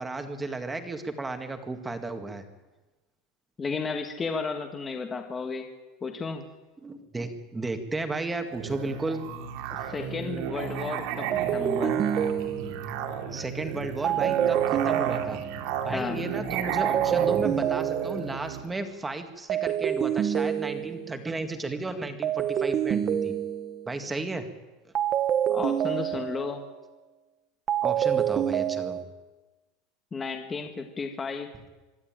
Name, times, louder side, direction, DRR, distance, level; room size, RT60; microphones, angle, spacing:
voice 1, 0.0-2.4 6.8-9.2 13.3-15.4 15.8-23.4 23.9-24.4 27.8-29.0, right 3 dB, 10° right, 7 dB, 2.0 m, -33 dB
voice 2, 3.6-5.7 6.0-6.4 9.7-12.1 15.9-16.2 25.5-26.6 30.1-31.5, left 4 dB, 15° left, 5 dB, 1.6 m, -33 dB
Musical instrument, 8.5-18.7, right 8 dB, 60° right, 2.8 m, -33 dB
sound 1, 10.0-10.3 11.3-13.0 14.0-15.7 16.8-18.5 19.5-21.2 22.2-23.9 24.9-26.6 27.7-29.0, right 10 dB, 30° right, 1.3 m, -27 dB
24.5 x 13.0 x 9.0 m, 1.2 s
supercardioid pair, 150°, 0 cm